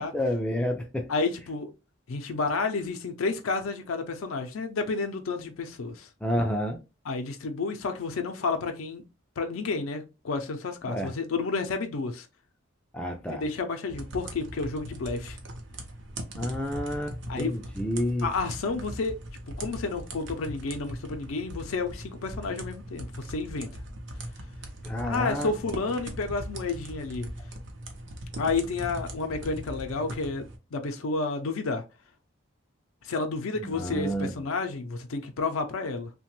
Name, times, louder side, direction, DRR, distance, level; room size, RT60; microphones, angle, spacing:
voice 1, 0.0-1.1 6.2-6.8 10.9-11.1 12.9-13.4 16.4-18.3 24.8-25.5 33.6-34.4, equal, 5° left, 0.3 m, -29 dB
voice 2, 1.1-1.7 2.1-6.1 7.1-9.0 9.4-12.3 13.3-15.4 17.3-17.5 18.2-19.2 19.5-23.8 25.0-27.3 28.4-31.8 33.0-36.1, left 4 dB, 80° left, 0.4 m, -31 dB
sound 1, 13.9-30.6, right 1 dB, 60° right, 0.6 m, -40 dB
2.9 x 2.1 x 2.9 m
head